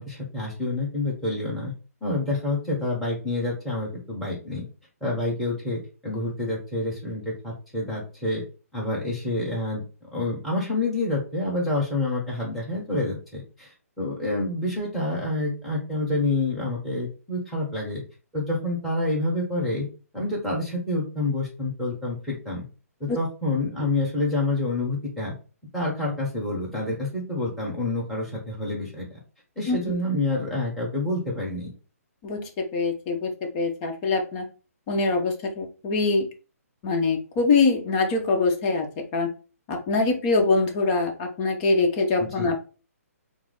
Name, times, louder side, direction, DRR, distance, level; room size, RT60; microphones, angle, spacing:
voice 1, 0.0-1.7 2.0-4.6 5.0-8.4 8.7-9.8 10.1-13.7 14.0-18.0 18.3-19.9 20.1-22.6 23.0-25.3 25.7-29.2 29.5-31.7 42.2-42.5, left 2 dB, ahead, -4 dB, 1.5 m, -28 dB
voice 2, 32.2-34.4 34.9-36.3 36.8-39.3 39.7-42.6, left 3 dB, 30° left, 3 dB, 0.9 m, -24 dB
4.6 x 2.0 x 3.8 m, 0.35 s
hypercardioid pair, 145°, 8 cm